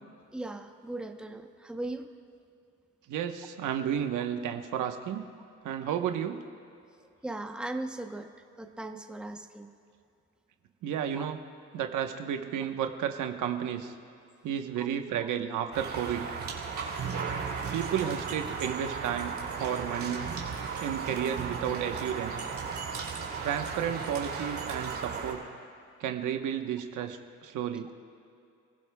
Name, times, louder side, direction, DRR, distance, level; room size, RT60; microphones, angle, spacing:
voice 1, 0.3-2.1 7.2-8.3 8.6-9.7 11.1-11.3 14.8-14.9 15.2-15.3 18.0-18.1, right 2 dB, 5° right, 5 dB, 0.8 m, -38 dB
voice 2, 3.1-5.2 5.6-6.4 10.8-11.4 11.7-13.9 14.4-16.3 17.7-20.2 20.8-22.5 23.4-25.4 26.0-27.9, right 9 dB, 85° right, 5 dB, 1.1 m, -32 dB
sound 1, 15.7-25.3, right 5 dB, 70° right, 3.2 m, -35 dB
29.0 x 15.5 x 2.3 m, 2.5 s
cardioid pair, 90°, 30 cm